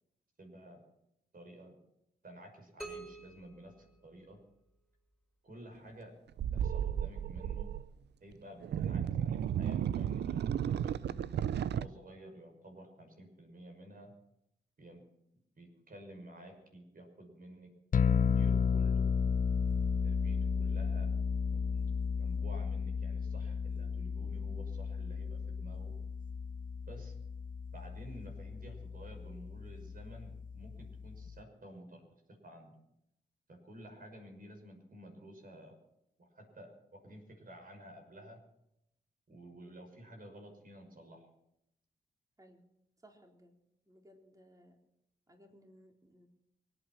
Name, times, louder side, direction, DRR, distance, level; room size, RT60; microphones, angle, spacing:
voice 1, 0.4-0.8 1.3-1.7 2.2-4.4 5.4-6.1 6.5-7.7 8.2-11.3 11.6-14.1 14.8-15.0 15.6-17.7 18.1-19.1 20.0-21.1 21.4-25.9 26.9-27.1 27.7-32.0 32.4-32.7 33.5-35.8 36.2-38.4 39.3-41.3, right 1 dB, 50° right, 3 dB, 6.3 m, -52 dB
sound 1, 2.8-4.7, right 2 dB, 5° right, 7.0 m, -49 dB
sound 2, 6.4-7.8 8.6-11.9, right 9 dB, 70° right, 0.6 m, -33 dB
sound 3, 17.9-31.3, left 6 dB, 50° left, 0.7 m, -33 dB
voice 2, 43.0-43.6 43.9-44.8 45.3-46.3, equal, 20° right, 2 dB, 3.8 m, -60 dB
24.5 x 9.0 x 6.1 m, 0.80 s
supercardioid pair, 45°, 18 cm